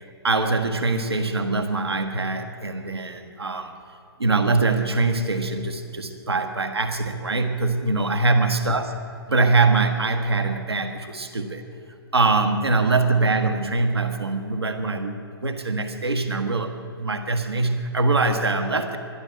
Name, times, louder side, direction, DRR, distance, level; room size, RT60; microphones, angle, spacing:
voice 1, 0.2-3.8 4.2-8.9 9.3-11.6 12.1-19.0, right 3 dB, 85° right, 5 dB, 1.4 m, -23 dB
12.0 x 11.0 x 7.7 m, 2.6 s
figure-of-eight pair, 120°, 13 cm